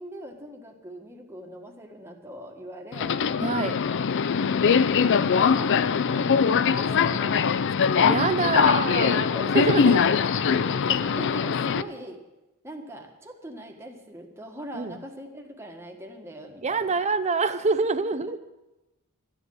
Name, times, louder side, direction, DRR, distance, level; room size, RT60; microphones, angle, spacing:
voice 1, 0.0-3.2 4.6-5.8 6.1-7.5 8.1-12.2 12.6-17.0 18.0-18.2, equal, 10° right, 1 dB, 1.7 m, -41 dB
Subway metro underground, 2.9-11.8, left 6 dB, 55° left, 0.5 m, -22 dB
voice 2, 3.4-3.7 8.0-9.3 9.5-10.0 14.7-14.9 16.6-18.4, right 4 dB, 30° right, 12 dB, 0.6 m, -25 dB
13.5 x 10.5 x 6.4 m, 0.99 s
head